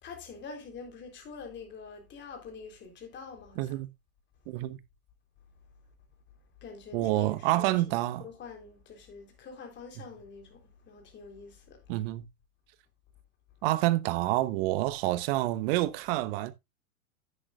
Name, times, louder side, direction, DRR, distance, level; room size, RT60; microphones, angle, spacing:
voice 1, 0.0-3.8 6.6-11.8, left 5 dB, 25° left, 3.8 m, -46 dB
voice 2, 3.6-3.9 4.5-4.8 6.9-8.3 11.9-12.2 13.6-16.5, right 17 dB, 45° right, 1.0 m, -28 dB
10.5 x 9.0 x 2.5 m
hypercardioid pair, 110°, 41 cm